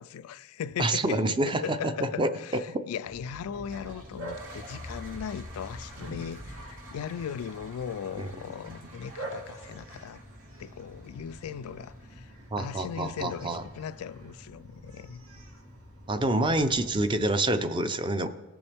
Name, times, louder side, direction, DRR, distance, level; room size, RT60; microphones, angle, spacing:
voice 1, 0.0-10.2 10.6-12.3 12.6-15.2, left 8 dB, 75° left, 0.3 m, -38 dB
voice 2, 0.8-2.3 2.7-2.8 8.2-8.3 12.5-13.6 16.1-18.3, right 1 dB, 20° right, 0.5 m, -27 dB
Bark, 3.0-17.4, equal, 80° right, 1.8 m, -45 dB
Toilet flush, 3.5-12.3, right 2 dB, 60° right, 3.3 m, -51 dB
18.5 x 7.0 x 3.4 m
head